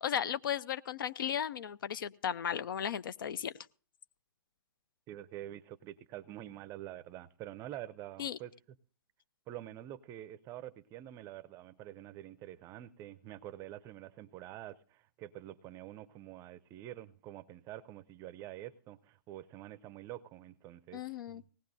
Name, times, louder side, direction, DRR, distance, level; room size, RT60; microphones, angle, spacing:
voice 1, 0.0-3.5 8.2-8.4 20.9-21.4, left 9 dB, 60° left, 0.5 m, -35 dB
voice 2, 5.1-8.5 9.5-21.5, right 13 dB, 25° right, 0.5 m, -47 dB
19.0 x 18.0 x 2.6 m
hypercardioid pair, 125°, 12 cm